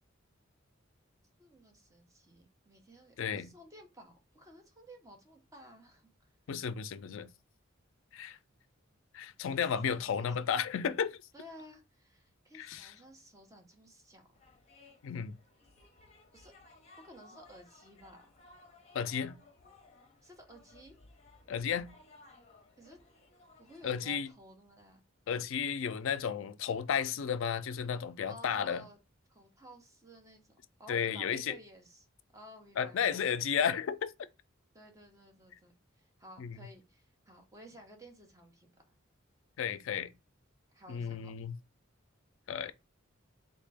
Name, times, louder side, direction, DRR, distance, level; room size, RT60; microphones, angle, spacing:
voice 1, 1.4-6.3 9.4-10.5 11.3-14.3 16.3-16.5 17.0-18.4 20.2-21.0 22.8-23.0 23.6-25.0 28.3-29.0 29.3-30.5 30.8-32.1 32.3-33.2 34.7-38.7 40.7-41.4, equal, 15° right, 0.8 m, -54 dB
voice 2, 3.2-3.5 6.5-7.3 8.1-8.4 9.1-11.2 12.5-12.9 15.0-15.4 18.9-19.4 21.5-21.9 23.8-24.3 25.3-28.8 30.9-31.6 32.8-34.1 36.4-36.6 39.6-40.1 40.9-41.6 42.5-42.7, left 7 dB, 70° left, 0.4 m, -33 dB
sound 1, 14.3-24.3, left 3 dB, 35° left, 0.7 m, -60 dB
3.6 x 2.2 x 3.4 m
head